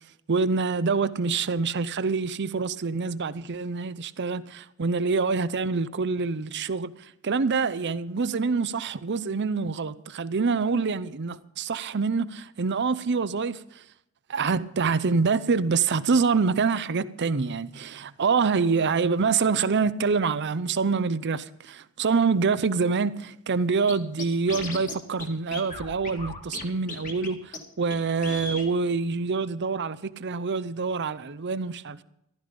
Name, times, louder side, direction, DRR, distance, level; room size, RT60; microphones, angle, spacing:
voice 1, 0.3-6.9 7.2-13.6 14.3-32.0, right 4 dB, 55° right, 0.6 m, -26 dB
Scratching (performance technique), 23.9-24.0 24.2-24.9 25.2-25.3 25.5-26.6 26.9-27.3 27.5-27.6 27.9-28.0 28.2-28.7, left 2 dB, 40° left, 2.2 m, -35 dB
15.0 x 12.0 x 5.2 m
head